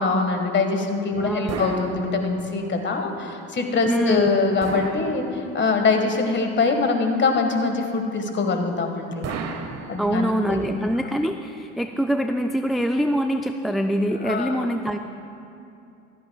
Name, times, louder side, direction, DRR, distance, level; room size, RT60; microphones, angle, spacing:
voice 1, 0.0-9.3 9.9-10.6 14.2-14.7, left 4 dB, 30° left, 4 dB, 1.6 m, -23 dB
voice 2, 1.1-1.6 3.9-4.3 10.0-15.0, equal, ahead, 5 dB, 0.3 m, -24 dB
sound 1, 1.5-2.7 4.6-5.8 9.2-10.5, right 5 dB, 45° right, 1.1 m, -34 dB
15.5 x 14.0 x 2.3 m, 2.7 s
hypercardioid pair, 70°, 36 cm